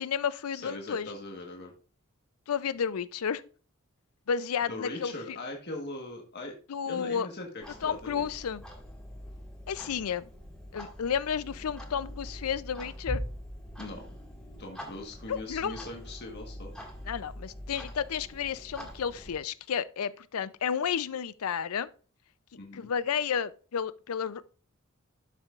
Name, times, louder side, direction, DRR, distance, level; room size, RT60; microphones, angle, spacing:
voice 1, 0.0-1.1 2.5-3.4 4.3-5.1 6.7-7.3 7.8-8.6 9.7-10.2 10.7-13.2 15.3-15.8 17.1-21.9 22.7-24.4, left 7 dB, 90° left, 0.5 m, -32 dB
voice 2, 0.5-1.7 4.7-6.5 6.9-8.4 13.8-14.2 14.6-16.7 22.6-22.9, left 2 dB, 50° left, 1.4 m, -41 dB
Clock, 7.6-19.4, equal, 5° left, 2.0 m, -43 dB
12.0 x 6.0 x 2.4 m
head